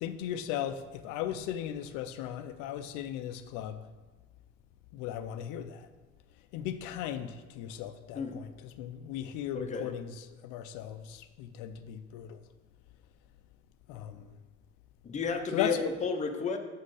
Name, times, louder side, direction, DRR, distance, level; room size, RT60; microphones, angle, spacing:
voice 1, 0.0-3.8 4.9-5.9 6.5-10.1 10.4-12.4 13.9-14.3 15.5-15.8, left 10 dB, 85° left, 9 dB, 0.5 m, -37 dB
voice 2, 9.5-9.9 15.0-16.6, left 5 dB, 25° left, 4 dB, 0.6 m, -32 dB
6.4 x 4.3 x 4.8 m, 1.3 s
cardioid pair, 125°, 30 cm